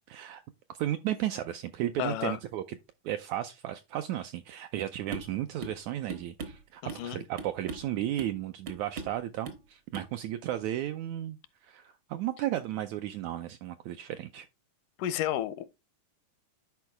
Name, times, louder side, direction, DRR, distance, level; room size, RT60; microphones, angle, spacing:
voice 1, 0.1-0.4 0.8-2.8 3.1-11.4 11.6-14.5, right 12 dB, 85° right, 1.7 m, -34 dB
voice 2, 2.0-2.4 6.8-7.2 15.0-15.6, left 12 dB, 80° left, 2.1 m, -31 dB
sound 1, 5.1-5.3 5.6-5.8 6.1-7.1 7.4-7.9 8.2-8.4 8.7-9.2 9.5-9.7 9.9-10.1, right 4 dB, 65° right, 1.1 m, -40 dB
10.5 x 4.6 x 3.3 m
omnidirectional pair, 3.8 m